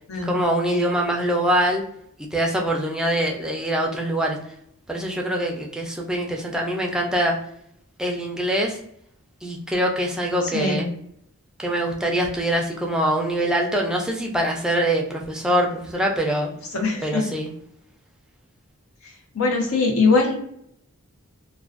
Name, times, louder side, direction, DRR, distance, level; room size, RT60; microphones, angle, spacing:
voice 1, 0.2-1.8 2.2-4.4 4.9-7.4 8.0-8.8 9.4-10.9 11.6-16.5 17.0-17.5, right 1 dB, 5° right, 0 dB, 0.3 m, -24 dB
voice 2, 10.5-10.9 16.7-17.2 19.3-20.4, left 3 dB, 85° left, 2 dB, 0.7 m, -21 dB
2.3 x 2.2 x 2.4 m, 0.71 s
head